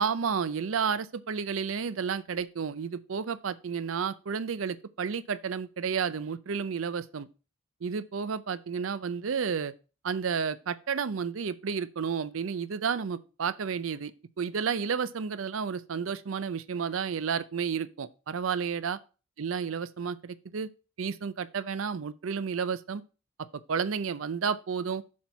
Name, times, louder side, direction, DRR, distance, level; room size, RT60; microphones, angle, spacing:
voice 1, 0.0-7.3 7.8-9.7 10.0-14.1 14.4-19.0 19.4-20.7 21.0-23.0 23.7-25.0, right 6 dB, 80° right, 0.5 m, -31 dB
7.3 x 4.4 x 5.7 m
head